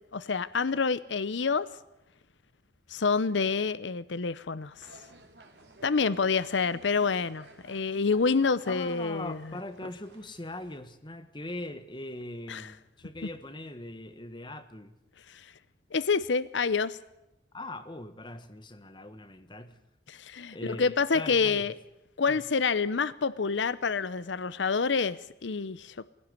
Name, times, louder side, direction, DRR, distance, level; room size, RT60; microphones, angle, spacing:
voice 1, 0.1-1.7 2.9-4.7 5.8-9.4 12.5-12.7 15.3-15.5 15.9-17.0 20.1-21.7 22.2-26.1, left 5 dB, 80° left, 0.7 m, -28 dB
sound 1, 4.7-10.8, right 2 dB, 60° right, 3.7 m, -54 dB
voice 2, 8.7-15.0 17.5-19.8 20.5-21.7 22.3-22.4, left 1 dB, 25° left, 1.5 m, -41 dB
21.0 x 17.0 x 9.7 m
head